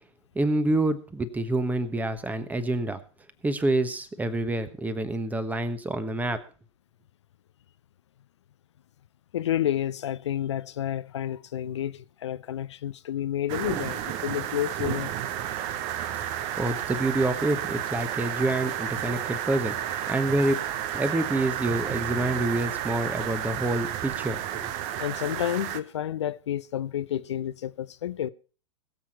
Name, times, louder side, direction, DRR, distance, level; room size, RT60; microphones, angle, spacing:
voice 1, 0.3-3.0 3.4-6.4 16.6-20.6 20.9-24.7, right 2 dB, 10° right, 1.2 m, -27 dB
voice 2, 9.3-15.1 25.0-28.3, left 11 dB, 65° left, 0.6 m, -30 dB
sound 1, 13.5-25.8, right 11 dB, 40° right, 1.0 m, -32 dB
20.5 x 7.5 x 4.4 m
figure-of-eight pair, 100°, 16 cm